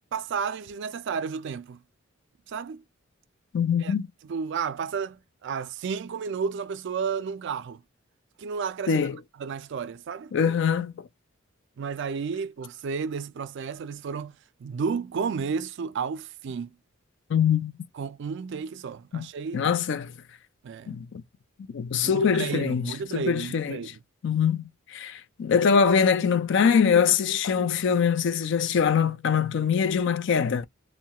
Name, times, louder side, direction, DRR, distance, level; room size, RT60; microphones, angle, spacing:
voice 1, 0.1-1.8 2.5-2.8 3.8-3.9 4.3-7.8 8.4-9.1 9.4-10.3 11.8-14.3 14.6-16.7 17.9-19.7 20.6-20.9 22.0-24.0, right 6 dB, 60° right, 0.4 m, -32 dB
voice 2, 3.5-4.1 8.9-9.2 10.3-11.1 17.3-17.7 19.1-19.3 19.5-20.1 20.9-21.2 21.7-23.8 24.2-24.6 24.9-30.6, left 6 dB, 60° left, 0.4 m, -23 dB
2.3 x 2.1 x 2.8 m
head